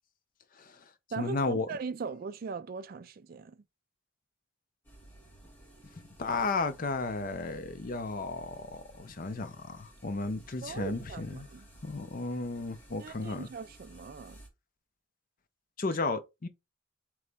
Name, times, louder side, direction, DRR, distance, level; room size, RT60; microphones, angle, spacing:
voice 1, 0.6-0.9 1.2-1.7 6.2-11.5 11.8-13.5 15.8-16.5, left 3 dB, 45° left, 0.6 m, -34 dB
voice 2, 1.1-3.6 10.6-11.7 13.0-14.4 15.8-15.9, right 5 dB, 50° right, 0.4 m, -40 dB
sound 1, 4.8-14.5, right 1 dB, 10° left, 2.0 m, -55 dB
3.9 x 3.2 x 3.4 m
head